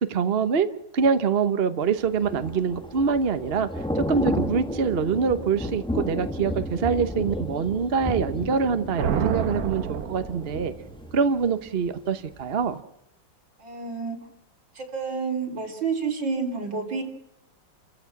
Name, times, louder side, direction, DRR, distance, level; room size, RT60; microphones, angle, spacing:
voice 1, 0.0-0.7 0.9-3.7 3.9-10.7 11.1-12.8, right 6 dB, 40° right, 9 dB, 1.1 m, -24 dB
Thunder / Rain, 2.0-11.9 12.3-12.5, equal, 5° left, 0.8 m, -32 dB
sound 1, 9.0-10.9, right 7 dB, 55° right, 1.3 m, -29 dB
voice 2, 13.6-14.2 14.7-17.0, right 5 dB, 80° right, 1 dB, 4.4 m, -29 dB
29.0 x 15.5 x 6.0 m, 0.82 s
omnidirectional pair, 2.0 m